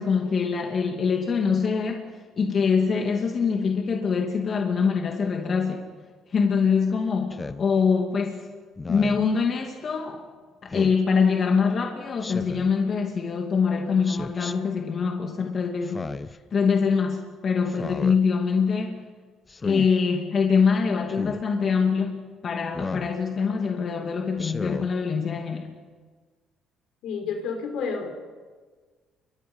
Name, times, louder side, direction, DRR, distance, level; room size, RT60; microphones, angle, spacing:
voice 1, 0.0-2.1 2.4-5.8 6.3-8.5 8.9-10.2 10.6-16.1 16.5-19.0 19.6-25.7, left 5 dB, 45° left, 2 dB, 2.6 m, -24 dB
Speech synthesizer, 7.3-7.6 8.8-9.3 10.7-11.0 12.2-12.7 14.0-14.5 15.8-16.4 17.7-18.2 19.5-19.9 21.1-21.4 22.7-23.1 24.4-24.9, left 3 dB, 20° left, 0.9 m, -34 dB
voice 2, 27.0-28.1, left 5 dB, 75° left, 4 dB, 5.6 m, -30 dB
30.0 x 24.5 x 5.6 m, 1.5 s
cardioid pair, 110°, 0 cm